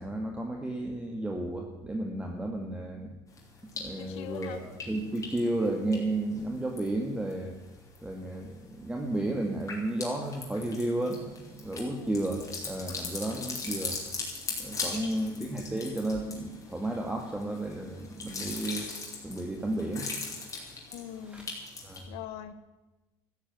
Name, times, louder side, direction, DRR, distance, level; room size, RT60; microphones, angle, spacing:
voice 1, 0.0-3.2 3.8-7.6 8.0-14.0 14.6-18.9 19.2-20.1 21.2-21.4 21.8-22.1, right 1 dB, 10° right, 2 dB, 2.0 m, -33 dB
sound 1, 3.4-4.0 4.3-7.3 7.7-8.2 8.6-22.0, left 4 dB, 30° left, 5.0 m, -40 dB
voice 2, 4.0-4.6 11.7-12.1 14.8-15.3 20.9-21.5 22.1-22.5, left 10 dB, 75° left, 12 dB, 1.5 m, -42 dB
14.0 x 10.5 x 9.4 m, 1.1 s
cardioid pair, 110°, 10 cm